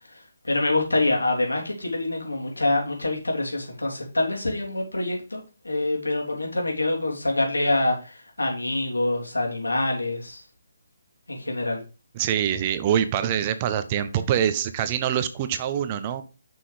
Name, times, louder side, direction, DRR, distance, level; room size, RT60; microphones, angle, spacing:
voice 1, 0.1-10.4 11.3-11.8, left 2 dB, 90° left, 3.3 m, -26 dB
voice 2, 12.2-16.2, right 9 dB, 30° right, 0.9 m, -24 dB
6.2 x 5.7 x 5.1 m
figure-of-eight pair, 145°, 0 cm